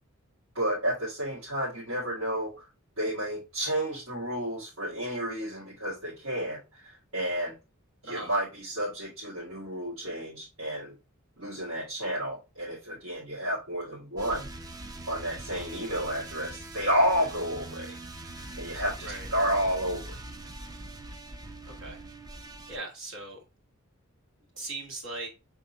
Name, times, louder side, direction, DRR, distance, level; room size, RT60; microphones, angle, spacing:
voice 1, 0.5-2.7 3.0-7.6 8.0-10.9 11.4-14.5 15.1-17.9 18.6-20.1, equal, 80° right, 1.9 m, -31 dB
sound 1, 14.2-22.8, right 2 dB, 20° right, 0.4 m, -42 dB
voice 2, 22.7-23.4 24.5-25.3, right 2 dB, 65° right, 1.9 m, -39 dB
5.4 x 3.4 x 2.7 m
head